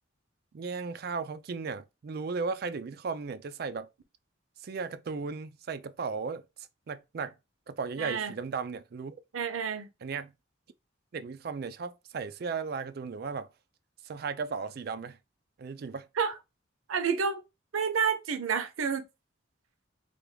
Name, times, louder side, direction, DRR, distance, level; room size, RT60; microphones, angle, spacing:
voice 1, 0.5-3.9 4.6-6.4 6.9-7.3 7.7-9.2 10.0-10.3 11.1-13.5 14.0-15.2 15.6-16.1, right 5 dB, 50° right, 0.3 m, -35 dB
voice 2, 8.0-8.3 9.3-9.9 16.2-16.3 16.9-17.4 17.7-19.0, right 6 dB, 85° right, 0.6 m, -29 dB
3.4 x 2.3 x 3.2 m
head